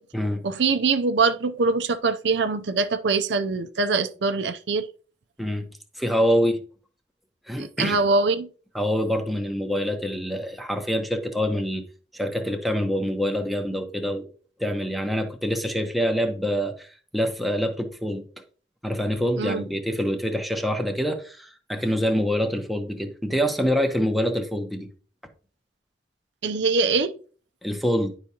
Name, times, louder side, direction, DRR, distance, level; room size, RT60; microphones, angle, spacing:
voice 1, 0.4-4.9 7.6-8.5 19.4-19.6 26.4-27.1, right 4 dB, 75° right, 0.5 m, -23 dB
voice 2, 6.0-6.6 7.5-8.0 8.7-11.8 12.1-14.3 14.6-16.9 17.1-18.2 18.8-24.9 27.6-28.1, equal, ahead, 0.8 m, -25 dB
10.5 x 4.8 x 2.8 m
head